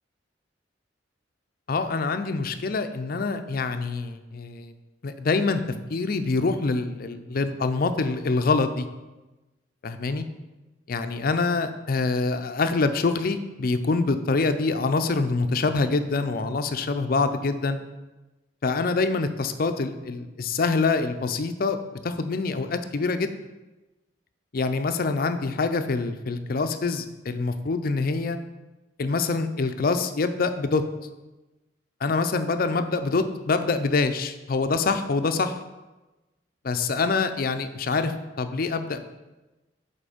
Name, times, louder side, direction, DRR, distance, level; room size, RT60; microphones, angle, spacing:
voice 1, 1.7-4.7 5.0-5.6 5.9-8.9 9.8-10.3 10.9-17.8 18.6-21.8 22.0-23.3 24.5-28.4 29.0-30.8 32.0-35.6 36.6-39.0, left 3 dB, 50° left, 9 dB, 0.5 m, -25 dB
7.6 x 4.3 x 5.0 m, 1.1 s
head